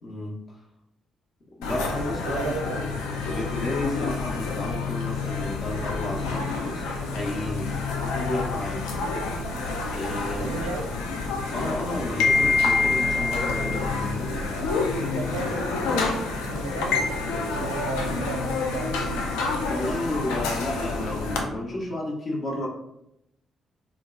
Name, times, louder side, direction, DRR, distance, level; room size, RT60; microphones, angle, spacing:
voice 1, 0.0-0.4 1.6-8.9 9.9-10.6 11.5-14.6 15.2-15.5 19.7-22.7, left 1 dB, 50° left, -2 dB, 0.8 m, -32 dB
sound 1, 1.6-21.4, left 3 dB, 70° left, 0.3 m, -28 dB
voice 2, 2.3-2.9 10.4-10.9 15.1-19.0, right 3 dB, 75° right, 1 dB, 0.4 m, -34 dB
2.7 x 2.3 x 2.3 m, 0.82 s
figure-of-eight pair, 40°, 0 cm